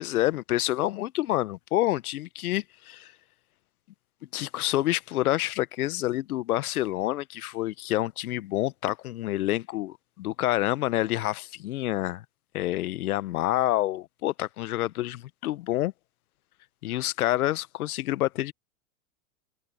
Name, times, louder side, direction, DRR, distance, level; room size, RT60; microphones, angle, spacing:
voice 1, 0.0-3.1 4.3-12.2 12.5-15.9 16.8-18.5, left 15 dB, 80° left, 1.2 m, -28 dB
hypercardioid pair, 115°, 43 cm